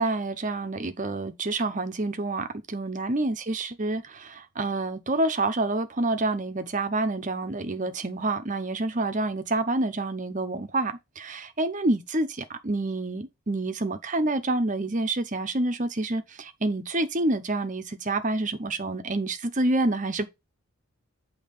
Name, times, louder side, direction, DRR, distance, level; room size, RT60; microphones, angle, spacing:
voice 1, 0.0-20.3, right 2 dB, 35° right, 0.8 m, -28 dB
8.5 x 2.9 x 5.4 m
head